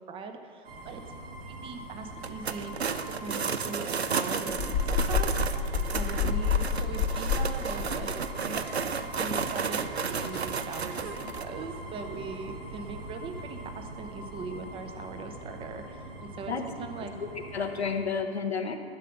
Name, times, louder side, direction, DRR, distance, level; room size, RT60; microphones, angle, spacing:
voice 1, 0.1-1.0 1.5-5.3 5.6-8.1 8.4-8.6 9.2-11.1 11.4-16.5 16.8-17.1, right 4 dB, 15° right, 6 dB, 0.8 m, -40 dB
sound 1, 0.6-18.0, right 1 dB, 65° right, 2.1 m, -42 dB
sound 2, 2.2-11.4, right 6 dB, 90° right, 0.6 m, -33 dB
sound 3, 4.5-9.1 9.3-9.5 9.9-10.0 10.3-10.5 11.0-11.2, left 6 dB, 40° left, 1.3 m, -29 dB
voice 2, 16.5-18.8, left 5 dB, 85° left, 4 dB, 1.2 m, -32 dB
11.5 x 7.5 x 5.4 m, 2.2 s
figure-of-eight pair, 115°, 31 cm